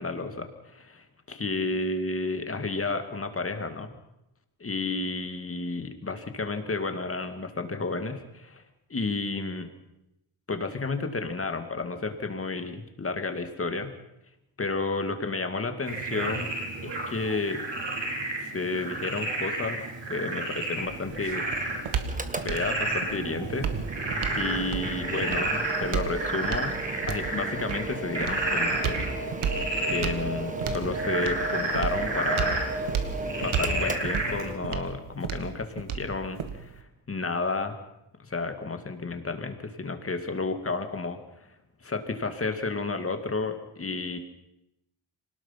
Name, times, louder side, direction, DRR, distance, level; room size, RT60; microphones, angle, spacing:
voice 1, 0.0-3.9 4.6-8.6 8.9-9.7 10.5-13.9 14.6-16.5 16.8-17.6 18.4-19.8 20.1-21.4 22.3-23.8 24.3-26.7 27.1-29.1 29.9-32.6 33.4-37.8 38.2-41.2 41.8-44.2, left 3 dB, 25° left, 7 dB, 2.2 m, -31 dB
Frog, 15.9-34.5, right 2 dB, 60° right, 5.2 m, -31 dB
sound 1, 20.8-36.8, right 7 dB, 80° right, 2.0 m, -34 dB
Mechanical fan, 22.0-34.8, right 3 dB, 15° right, 1.4 m, -38 dB
25.5 x 19.0 x 5.8 m, 0.86 s
wide cardioid pair, 135°, 49 cm